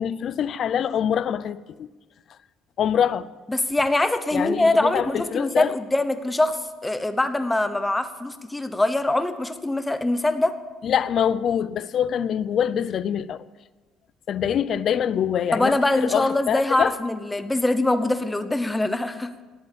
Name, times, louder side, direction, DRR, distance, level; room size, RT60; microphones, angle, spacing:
voice 1, 0.0-1.9 2.8-3.3 4.3-5.7 10.8-13.4 14.3-17.0, left 9 dB, 45° left, 0.6 m, -24 dB
voice 2, 3.5-10.6 15.5-19.3, left 2 dB, 10° left, 0.9 m, -23 dB
18.5 x 8.5 x 8.9 m
cardioid pair, 150°, 0 cm